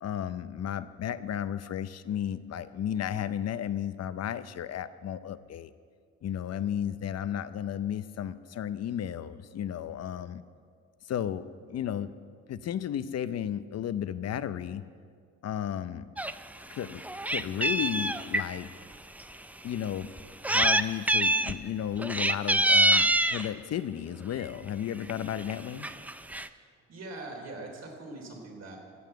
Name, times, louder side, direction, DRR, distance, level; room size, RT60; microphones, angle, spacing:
voice 1, 0.0-5.7 6.2-10.4 11.0-12.1 12.5-14.8 15.4-16.1 16.7-18.7 19.6-20.1 20.4-25.9, left 10 dB, 55° left, 13 dB, 0.6 m, -33 dB
Meow, 16.2-16.3 16.7-18.5 19.2-19.3 20.2-20.8 21.1-21.6 22.0-23.5 24.4-24.7 25.1-25.2 25.4-25.5 25.8-26.5, right 1 dB, 5° right, 0.4 m, -25 dB
voice 2, 26.9-28.8, right 2 dB, 55° right, 1 dB, 3.4 m, -42 dB
16.5 x 7.2 x 7.8 m, 2.1 s
cardioid pair, 90°, 30 cm